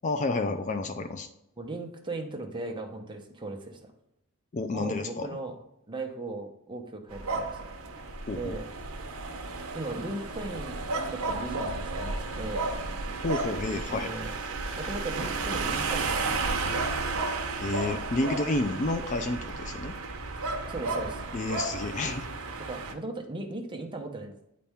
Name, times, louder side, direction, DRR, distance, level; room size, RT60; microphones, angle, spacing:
voice 1, 0.0-1.3 4.5-5.3 8.3-8.5 13.2-14.1 17.6-19.9 21.3-22.3, left 2 dB, 35° left, 8 dB, 0.4 m, -30 dB
voice 2, 1.6-3.9 4.7-5.6 5.9-7.6 7.9-8.1 8.3-8.7 9.7-12.7 13.9-14.3 14.7-17.3 20.7-21.2 22.6-24.3, right 2 dB, 20° right, 3 dB, 0.9 m, -38 dB
sound 1, 7.1-22.9, right 3 dB, 75° right, 0.9 m, -33 dB
9.3 x 4.2 x 3.5 m, 0.80 s
head